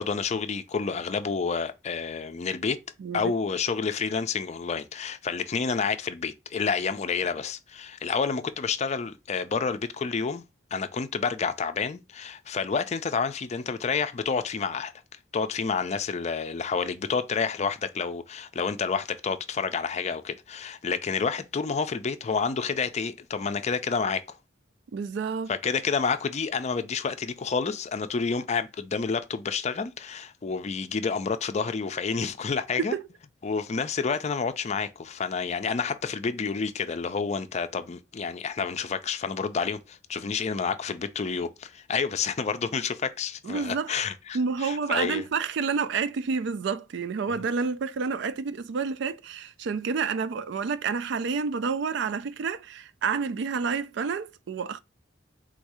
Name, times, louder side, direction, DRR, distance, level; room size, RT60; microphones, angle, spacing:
voice 1, 0.0-2.8 3.1-10.4 10.7-14.9 15.3-24.4 25.5-33.0 33.4-45.2 47.3-47.4, left 5 dB, 35° left, 0.4 m, -29 dB
voice 2, 3.0-3.3 24.9-25.5 32.8-33.0 43.4-43.9 44.3-54.8, right 5 dB, 65° right, 0.4 m, -29 dB
3.8 x 2.7 x 4.7 m
head